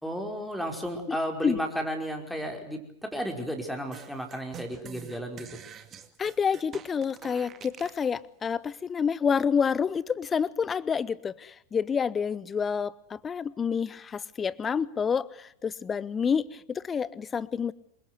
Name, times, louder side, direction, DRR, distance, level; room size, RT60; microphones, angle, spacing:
voice 1, 0.0-5.5, equal, ahead, 3 dB, 5.1 m, -33 dB
sound 1, 3.9-8.0, right 8 dB, 25° right, 2.3 m, -46 dB
voice 2, 6.2-17.7, left 6 dB, 20° left, 21 dB, 1.0 m, -28 dB
27.5 x 23.5 x 8.1 m, 0.70 s
figure-of-eight pair, 90°, 0 cm